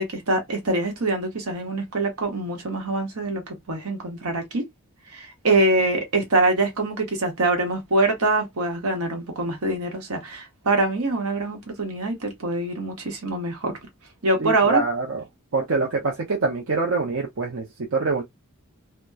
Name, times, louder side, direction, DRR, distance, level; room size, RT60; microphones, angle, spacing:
voice 1, 0.0-4.6 5.1-13.7 14.2-14.8, right 2 dB, 80° right, 1.1 m, -24 dB
voice 2, 14.4-15.2 15.5-17.7 17.9-18.2, right 4 dB, 60° right, 0.6 m, -24 dB
2.8 x 2.2 x 2.3 m
head